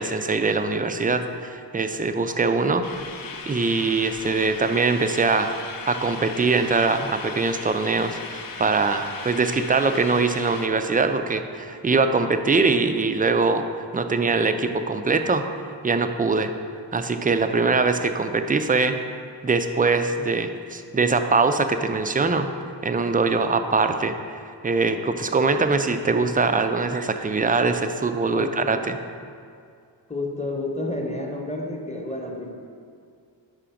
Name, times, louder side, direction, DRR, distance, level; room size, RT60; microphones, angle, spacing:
voice 1, 0.0-3.1 3.5-5.5 5.9-15.5 15.8-16.5 16.9-19.0 19.4-22.5 22.8-24.4 24.6-29.0, right 4 dB, 20° right, 8 dB, 0.3 m, -22 dB
sound 1, 2.8-10.7, left 5 dB, 50° left, 0.5 m, -37 dB
voice 2, 28.3-28.8 30.1-32.5, left 2 dB, 15° left, 0 dB, 0.8 m, -30 dB
5.1 x 4.9 x 5.7 m, 2.3 s
wide cardioid pair, 50°, 46 cm